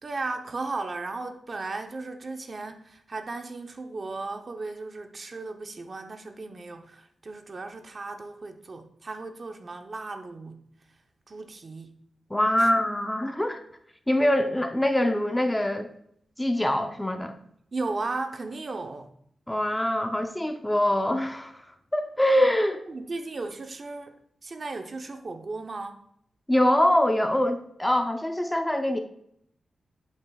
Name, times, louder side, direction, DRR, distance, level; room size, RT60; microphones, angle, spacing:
voice 1, 0.0-10.6 11.3-11.9 12.6-12.7 17.7-19.1 22.6-26.0, right 3 dB, 40° right, 0.7 m, -36 dB
voice 2, 12.3-13.6 14.1-15.9 16.4-17.4 19.5-21.6 21.9-22.8 26.5-29.0, left 1 dB, 10° left, 0.6 m, -24 dB
8.6 x 8.0 x 2.3 m
wide cardioid pair, 135°, 0 cm